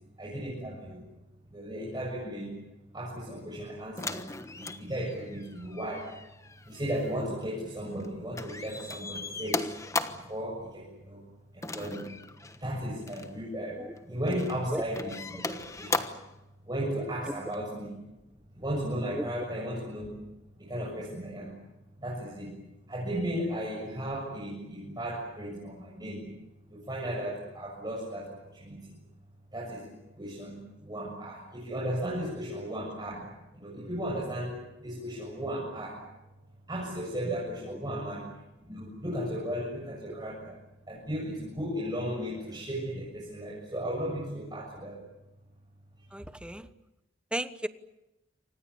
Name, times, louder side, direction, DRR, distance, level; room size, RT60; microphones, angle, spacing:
voice 1, 0.2-1.1 1.5-2.6 2.9-4.3 4.5-6.1 6.7-9.7 10.1-11.2 11.5-16.1 16.7-18.0 18.6-20.1 20.6-21.6 22.0-22.6 22.9-26.3 26.7-29.0 29.5-36.0 36.7-38.3 38.6-40.6 40.9-45.0, equal, 20° right, -3 dB, 7.0 m, -35 dB
sound 1, 4.0-8.1 8.3-10.4 11.6-12.6 13.0-13.3 14.0-14.6 14.9-16.3 17.5-17.6, left 3 dB, 15° left, 1.3 m, -37 dB
voice 2, 19.1-19.4 37.7-37.8 46.1-46.7 47.3-47.7, right 1 dB, 5° right, 12 dB, 1.1 m, -35 dB
29.0 x 26.0 x 7.1 m, 0.94 s
head